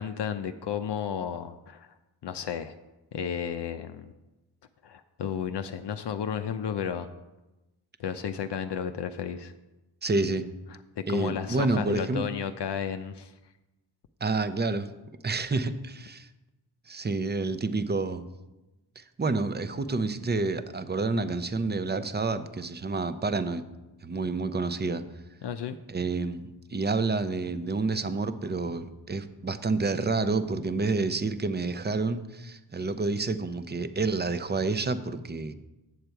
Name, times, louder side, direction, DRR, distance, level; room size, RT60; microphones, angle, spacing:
voice 1, 0.0-1.9 2.2-2.7 3.1-4.1 4.8-7.1 8.0-9.5 11.1-13.3 25.4-25.8, left 8 dB, 70° left, 8 dB, 0.6 m, -33 dB
voice 2, 10.0-10.5 11.1-12.3 14.2-14.9 15.2-16.3 16.9-18.3 19.0-23.6 24.0-25.0 25.9-35.5, right 3 dB, 25° right, 12 dB, 0.6 m, -29 dB
7.9 x 6.8 x 4.5 m, 1.0 s
cardioid pair, 50°, 43 cm